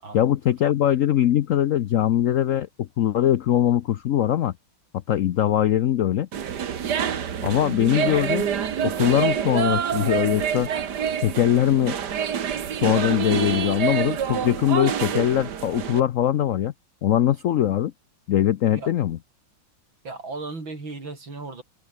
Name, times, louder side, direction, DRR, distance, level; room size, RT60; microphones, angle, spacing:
voice 1, 0.1-4.5 5.1-6.3 7.4-8.5 8.8-10.7 11.2-12.0 12.8-16.7 17.0-17.9 18.3-19.2, left 11 dB, 75° left, 0.7 m, -21 dB
sound 1, 6.3-16.0, right 8 dB, 60° right, 1.9 m, -27 dB
voice 2, 20.0-21.6, right 3 dB, 80° right, 6.0 m, -36 dB
omnidirectional pair, 2.1 m